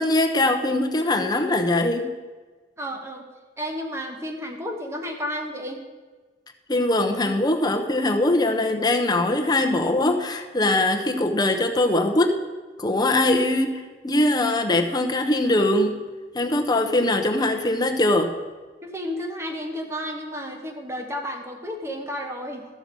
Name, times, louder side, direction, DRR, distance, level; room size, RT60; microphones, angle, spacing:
voice 1, 0.0-2.1 6.7-12.3 12.8-16.0 16.3-18.3, left 1 dB, 25° left, 5 dB, 0.8 m, -22 dB
voice 2, 2.8-3.3 3.6-5.8 18.8-22.7, equal, 15° right, 4 dB, 1.1 m, -32 dB
14.0 x 6.3 x 5.3 m, 1.4 s
head